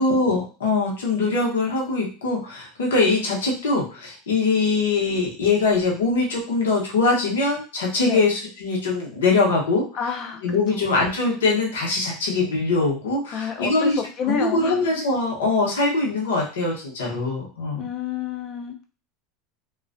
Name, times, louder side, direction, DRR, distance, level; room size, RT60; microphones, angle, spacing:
voice 1, 0.0-9.9 10.4-14.0 14.3-17.8, left 3 dB, 90° left, -2 dB, 0.8 m, -22 dB
voice 2, 9.9-10.4 10.7-10.8 13.3-14.8 17.8-18.9, left 6 dB, 50° left, 4 dB, 0.6 m, -29 dB
2.3 x 2.2 x 2.5 m, 0.36 s
hypercardioid pair, 100°, 0 cm